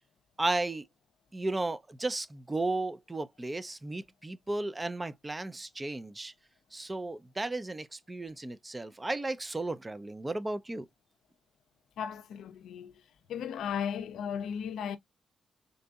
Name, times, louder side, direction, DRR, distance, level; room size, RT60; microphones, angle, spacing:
voice 1, 0.4-0.9 1.3-6.3 6.7-10.8, right 2 dB, 20° right, 0.5 m, -34 dB
voice 2, 12.0-12.9 13.3-15.0, left 8 dB, 80° left, 0.5 m, -35 dB
3.9 x 2.6 x 2.3 m
cardioid pair, 80°, 0 cm